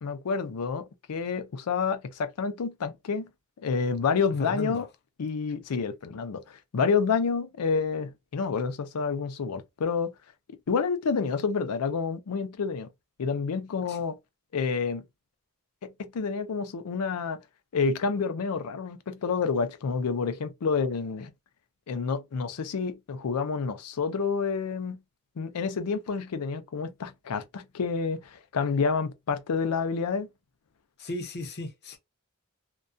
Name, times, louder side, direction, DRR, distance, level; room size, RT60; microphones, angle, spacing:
voice 1, 0.0-3.3 3.6-4.9 5.2-6.4 6.7-10.1 10.7-12.9 13.2-14.2 14.5-15.0 15.8-17.4 17.7-21.3 21.9-25.0 25.4-30.3, left 5 dB, 85° left, 0.5 m, -29 dB
voice 2, 4.4-4.9 13.9-14.0 31.0-32.0, left 1 dB, 50° left, 0.7 m, -35 dB
2.2 x 2.2 x 2.6 m
head